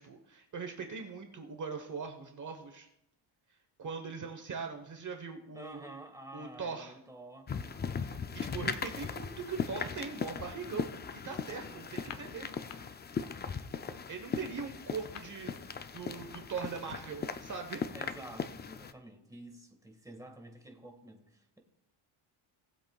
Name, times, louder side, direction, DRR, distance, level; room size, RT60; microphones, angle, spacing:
voice 1, 0.0-2.9 3.8-5.8 6.3-7.0 8.0-11.0 11.2-12.6 14.1-15.5 15.9-17.8, right 5 dB, 40° right, 4 dB, 1.1 m, -41 dB
voice 2, 5.5-8.1 11.7-11.9 17.9-21.6, right 2 dB, 5° right, 3 dB, 1.6 m, -50 dB
sound 1, 7.5-18.9, left 6 dB, 25° left, 0.4 m, -39 dB
sound 2, 12.0-12.8 13.1-13.4 13.7-17.2, left 9 dB, 80° left, 1.0 m, -50 dB
19.0 x 7.7 x 2.3 m, 0.80 s
cardioid pair, 120°, 49 cm